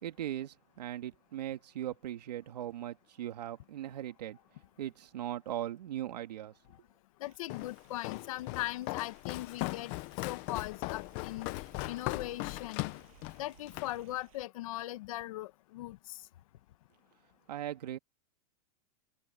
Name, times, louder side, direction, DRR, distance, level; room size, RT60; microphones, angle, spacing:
voice 1, 0.0-4.4 4.8-6.5 17.5-18.0, right 12 dB, 90° right, 2.3 m, -39 dB
voice 2, 7.2-9.9 10.2-12.8 13.4-16.2, left 16 dB, 60° left, 1.7 m, -39 dB
sound 1, 7.2-14.4, right 15 dB, 60° right, 7.6 m, -64 dB
Walk footsteps, 7.5-14.0, left 22 dB, 35° left, 0.7 m, -39 dB
supercardioid pair, 165°, 20 cm